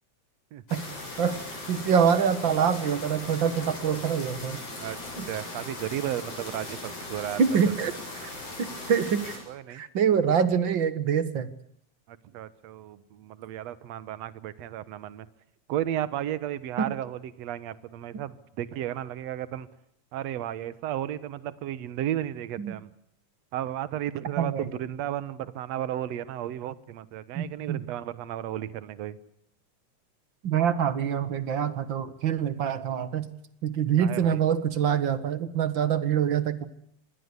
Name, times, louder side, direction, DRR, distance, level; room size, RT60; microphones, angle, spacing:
sound 1, 0.7-9.4, left 2 dB, 80° left, 9.5 m, -39 dB
voice 1, 1.7-4.6 5.2-5.3 7.4-7.9 8.2-8.3 8.6-9.4 9.7-11.5 16.8-16.9 22.6-22.8 24.4-24.7 27.4-27.8 30.4-33.3 33.6-36.7, right 7 dB, 45° right, 13 dB, 1.9 m, -25 dB
voice 2, 4.8-7.7 9.5-9.8 12.1-15.3 15.7-19.7 20.1-22.9 23.5-29.2 34.0-34.4, right 12 dB, 65° right, 16 dB, 2.3 m, -34 dB
27.0 x 21.0 x 8.3 m, 0.69 s
omnidirectional pair, 3.4 m